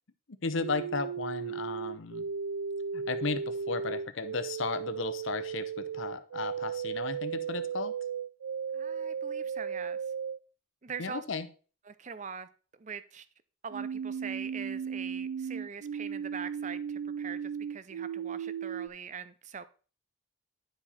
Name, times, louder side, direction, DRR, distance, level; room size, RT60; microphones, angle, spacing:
voice 1, 0.3-2.3 2.9-7.9 11.0-11.5, left 4 dB, 65° left, 0.8 m, -35 dB
sound 1, 0.6-10.4 13.7-18.9, right 7 dB, 90° right, 0.4 m, -36 dB
voice 2, 8.7-10.0 10.8-11.2 11.9-12.5 12.8-13.3 13.6-17.4 17.7-19.6, right 6 dB, 35° right, 0.5 m, -42 dB
10.5 x 4.9 x 4.2 m
head